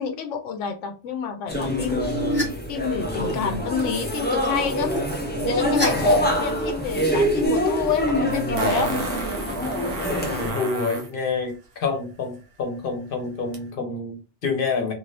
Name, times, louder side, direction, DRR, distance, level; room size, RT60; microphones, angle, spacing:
voice 1, 0.0-2.2 2.7-4.9 5.5-8.9 9.8-10.6, left 7 dB, 90° left, 0.9 m, -29 dB
sound 1, 1.5-10.5, equal, 15° left, 0.4 m, -25 dB
sound 2, 1.8-2.4 2.8-3.3 4.3-5.9 6.1-6.7 7.0-7.5, equal, 10° right, 1.1 m, -30 dB
Fart, 7.5-7.6 8.6-11.1 13.5-13.6, right 3 dB, 55° right, 0.9 m, -30 dB
voice 2, 10.1-14.9, left 4 dB, 50° left, 1.0 m, -28 dB
2.6 x 2.6 x 3.2 m
omnidirectional pair, 1.2 m